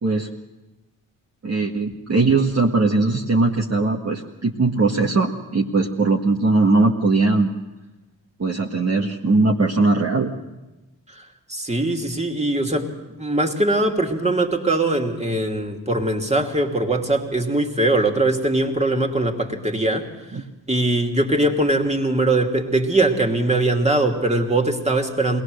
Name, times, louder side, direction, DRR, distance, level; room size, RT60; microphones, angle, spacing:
voice 1, 1.4-7.5 8.4-10.3 20.3-20.4, right 3 dB, 40° right, -1 dB, 1.7 m, -20 dB
voice 2, 11.5-12.9 13.2-20.1 20.7-25.4, right 2 dB, 15° right, 3 dB, 2.7 m, -21 dB
21.5 x 18.5 x 6.6 m, 1.1 s
supercardioid pair, 45°, 41 cm